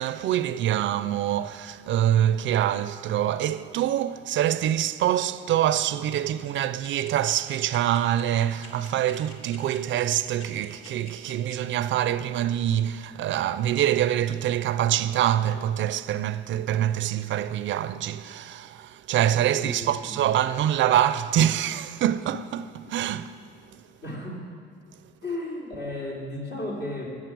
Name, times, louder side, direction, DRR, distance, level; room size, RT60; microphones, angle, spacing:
voice 1, 0.0-23.3, right 11 dB, 70° right, 0.5 m, -25 dB
sound 1, 6.8-11.5, left 3 dB, 85° left, 2.0 m, -46 dB
voice 2, 19.5-20.1 24.0-24.5 25.2-27.2, left 1 dB, 65° left, 3.5 m, -34 dB
14.5 x 7.5 x 6.1 m
cardioid pair, 90°, 20 cm